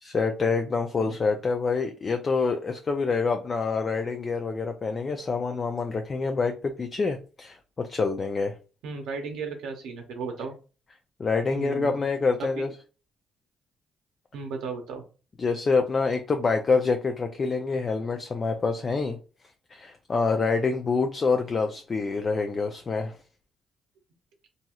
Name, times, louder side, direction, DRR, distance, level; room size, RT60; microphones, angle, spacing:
voice 1, 0.0-8.5 11.2-12.7 15.4-19.2 19.7-23.2, left 4 dB, 40° left, 0.4 m, -26 dB
voice 2, 8.8-10.5 11.5-12.0 12.4-12.7 14.3-15.0, right 5 dB, 90° right, 0.6 m, -35 dB
2.9 x 2.7 x 2.3 m
cardioid pair, 90°, 0 cm